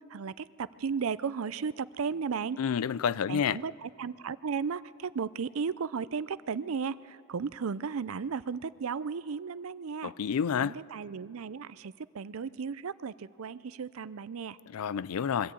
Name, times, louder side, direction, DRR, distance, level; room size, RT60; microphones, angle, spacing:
voice 1, 0.1-2.6 3.3-10.1 10.6-14.6, right 6 dB, 70° right, 0.5 m, -35 dB
voice 2, 2.6-3.6 10.0-10.8 14.7-15.5, left 7 dB, 80° left, 0.4 m, -29 dB
23.0 x 14.0 x 8.4 m
head